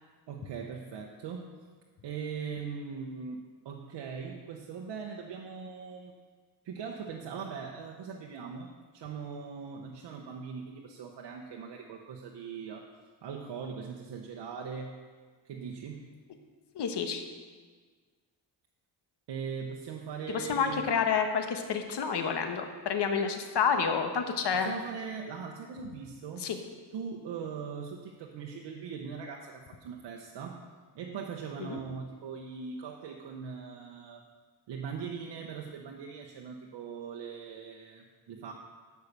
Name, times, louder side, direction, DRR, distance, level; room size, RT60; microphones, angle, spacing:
voice 1, 0.3-1.5 2.0-6.2 6.6-12.9 13.2-15.0 15.4-16.1 19.3-20.8 24.5-26.5 26.9-30.7 30.9-34.2 34.7-38.5, right 6 dB, 90° right, 1 dB, 0.9 m, -40 dB
voice 2, 16.7-17.2 20.3-24.7 26.4-26.6 31.6-31.8, left 6 dB, 70° left, 6 dB, 1.3 m, -29 dB
13.0 x 5.6 x 6.7 m, 1.5 s
cardioid pair, 115°, 42 cm